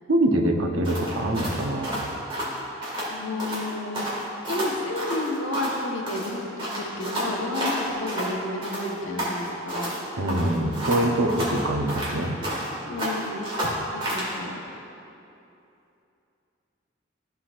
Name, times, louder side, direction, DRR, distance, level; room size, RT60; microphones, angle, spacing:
voice 1, 0.1-2.0 10.2-12.4, right 1 dB, 80° right, 2 dB, 0.8 m, -24 dB
sound 1, 0.8-3.1 3.4-3.7 3.9-5.8 6.1-8.3 8.6-10.0 10.3-12.7 13.0-14.3, equal, 25° right, 1.8 m, -30 dB
voice 2, 3.1-4.0 4.5-6.4 6.8-10.0 12.9-14.6, left 2 dB, 80° left, 0 dB, 1.1 m, -31 dB
13.5 x 5.8 x 2.5 m, 2.8 s
head